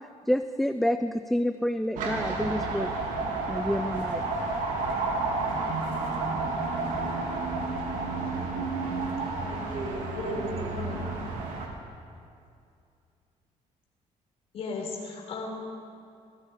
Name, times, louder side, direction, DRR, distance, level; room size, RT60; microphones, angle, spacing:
voice 1, 0.0-2.9 3.5-4.2, equal, ahead, 9 dB, 0.4 m, -28 dB
sound 1, 2.0-11.7, right 3 dB, 85° right, 3.4 m, -31 dB
voice 2, 9.4-11.5, right 3 dB, 55° right, -3 dB, 5.0 m, -39 dB
voice 3, 10.1-10.5 10.8-11.0 14.5-15.5, left 4 dB, 50° left, -1 dB, 4.9 m, -35 dB
27.0 x 20.0 x 4.9 m, 2.4 s
cardioid pair, 165°, 13 cm